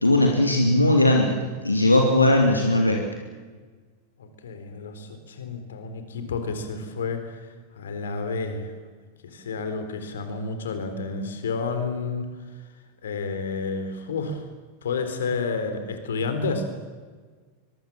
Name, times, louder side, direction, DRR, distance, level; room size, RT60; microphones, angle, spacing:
voice 1, 0.0-3.0, left 1 dB, 85° left, 2 dB, 2.5 m, -19 dB
voice 2, 4.2-8.7 9.2-12.7 13.0-14.5 14.8-16.7, left 4 dB, 65° left, 8 dB, 3.8 m, -30 dB
24.0 x 23.0 x 7.4 m, 1.4 s
figure-of-eight pair, 90°, 0 cm